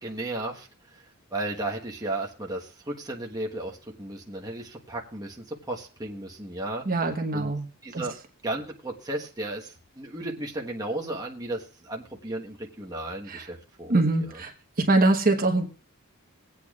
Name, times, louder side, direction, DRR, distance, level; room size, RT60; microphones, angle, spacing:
voice 1, 0.0-1.0 1.3-6.8 7.3-7.5 7.8-8.2 8.4-13.9, right 2 dB, 15° right, -1 dB, 1.3 m, -34 dB
voice 2, 6.8-7.7 7.9-8.0 13.3-13.5 13.9-14.5 14.8-15.7, right 2 dB, 40° right, 3 dB, 1.2 m, -23 dB
22.5 x 8.5 x 2.4 m, 0.38 s
head